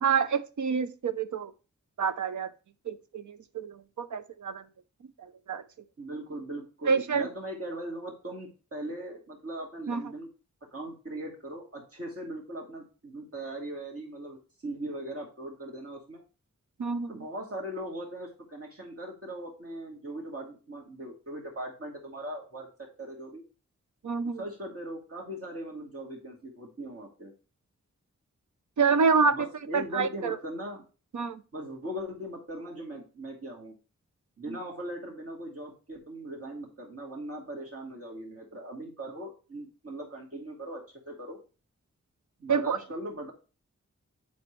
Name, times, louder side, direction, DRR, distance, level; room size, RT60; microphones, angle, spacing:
voice 1, 0.0-1.5 2.0-2.5 2.9-4.6 5.2-5.6 6.9-7.3 9.9-10.0 16.8-17.2 24.0-24.4 28.8-29.5 29.7-30.4 31.1-31.4 34.5-34.6 42.5-42.8, right 5 dB, 80° right, 0.7 m, -27 dB
voice 2, 6.0-10.3 10.7-16.2 17.0-23.4 24.4-27.3 29.3-30.9 31.5-33.8 34.4-41.4 42.4-43.3, right 1 dB, 50° right, 2.3 m, -39 dB
9.4 x 4.3 x 3.2 m
cardioid pair, 55°, 30 cm